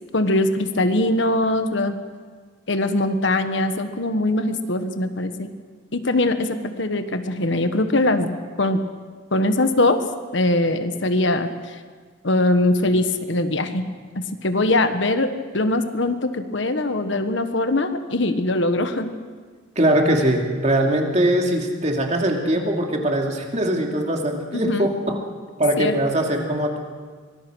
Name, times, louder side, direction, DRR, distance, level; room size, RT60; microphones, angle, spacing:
voice 1, 0.1-2.0 2.7-5.5 5.9-8.8 9.3-10.0 10.3-11.8 12.2-13.8 14.4-19.1 24.5-24.9 25.8-26.0, left 2 dB, 65° left, 8 dB, 1.3 m, -22 dB
voice 2, 19.8-25.2 25.6-26.8, right 1 dB, 35° right, 1 dB, 2.7 m, -21 dB
24.5 x 19.5 x 6.3 m, 1.5 s
head